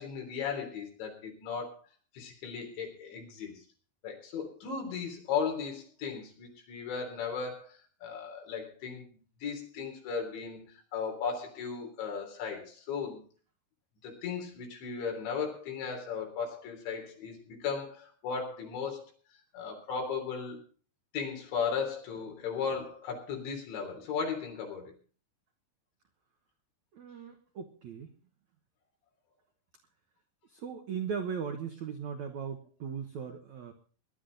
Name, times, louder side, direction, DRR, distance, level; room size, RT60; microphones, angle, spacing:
voice 1, 0.0-1.8 2.1-3.6 4.0-9.1 9.4-13.2 14.0-19.1 19.5-20.6 21.1-24.9, left 6 dB, 75° left, 2 dB, 5.7 m, -36 dB
voice 2, 26.9-28.1 30.5-33.7, right 6 dB, 85° right, 5 dB, 1.6 m, -38 dB
20.0 x 12.0 x 3.9 m, 0.40 s
omnidirectional pair, 5.3 m